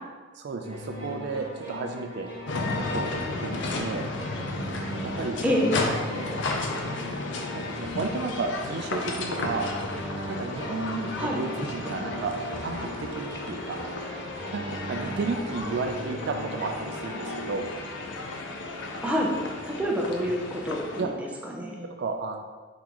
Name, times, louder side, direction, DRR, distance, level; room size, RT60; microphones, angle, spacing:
voice 1, 0.4-2.3 2.8-4.1 5.0-5.4 5.8-6.4 7.5-9.7 10.3-13.8 14.5-17.7 21.0-21.1 22.0-22.4, right 4 dB, 60° right, 4 dB, 0.3 m, -33 dB
sound 1, 0.6-17.5, equal, 25° right, 1.4 m, -39 dB
sound 2, 2.5-21.0, left 2 dB, 65° left, 0.5 m, -33 dB
voice 2, 19.0-19.3 19.6-21.1 21.4-21.9, equal, 5° right, -2 dB, 0.6 m, -27 dB
4.6 x 3.8 x 3.0 m, 1.4 s
head